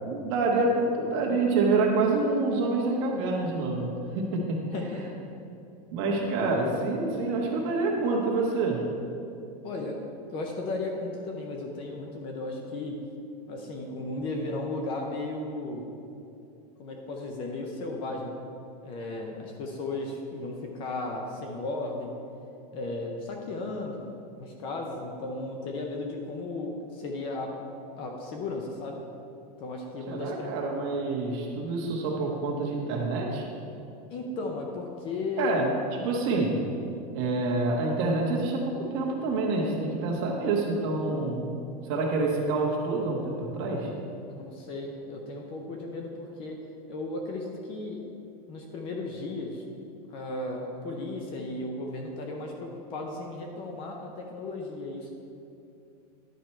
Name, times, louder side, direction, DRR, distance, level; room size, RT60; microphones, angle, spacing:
voice 1, 0.0-4.6 5.9-8.8 30.1-33.4 35.4-36.6 37.1-41.5 41.8-43.9, right 3 dB, 40° right, -1 dB, 1.4 m, -27 dB
voice 2, 4.6-5.1 9.6-10.0 10.3-13.0 13.5-15.9 16.8-18.3 18.8-22.1 22.7-24.1 24.4-27.5 28.0-29.0 29.6-30.6 34.1-35.5 44.3-46.6 46.9-48.0 48.5-49.6 50.1-55.1, left 2 dB, 25° left, 1 dB, 0.5 m, -35 dB
10.5 x 4.5 x 4.4 m, 2.6 s
supercardioid pair, 175°, 21 cm